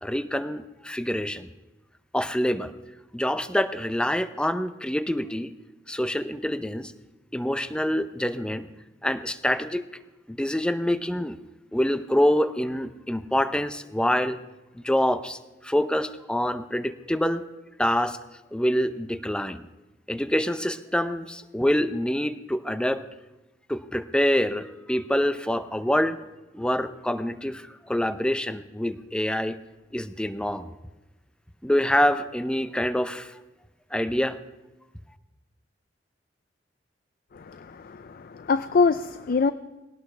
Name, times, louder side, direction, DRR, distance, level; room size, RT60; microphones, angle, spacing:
voice 1, 0.0-1.5 2.1-2.7 3.1-5.5 5.9-6.9 7.3-8.7 9.0-9.8 10.3-11.4 11.7-14.4 14.8-17.4 17.8-18.2 18.5-19.7 20.1-23.0 23.7-26.2 26.5-29.6 29.9-30.7 31.6-33.4 33.9-34.4, equal, 5° left, 11 dB, 0.6 m, -26 dB
voice 2, 37.3-39.5, left 4 dB, 50° left, 12 dB, 0.4 m, -24 dB
21.0 x 17.5 x 3.3 m, 1.1 s
head